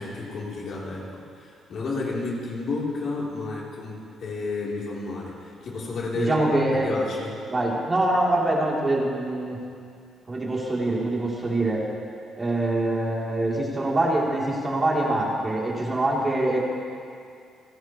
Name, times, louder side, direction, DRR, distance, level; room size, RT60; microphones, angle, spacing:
voice 1, 0.0-6.4 6.7-7.4, left 3 dB, 60° left, -4 dB, 3.6 m, -31 dB
voice 2, 6.1-6.9 7.5-9.6 10.3-11.8 12.3-16.6, right 2 dB, 30° right, -4 dB, 3.4 m, -24 dB
29.5 x 12.0 x 3.2 m, 2.4 s
cardioid pair, 90°, 0 cm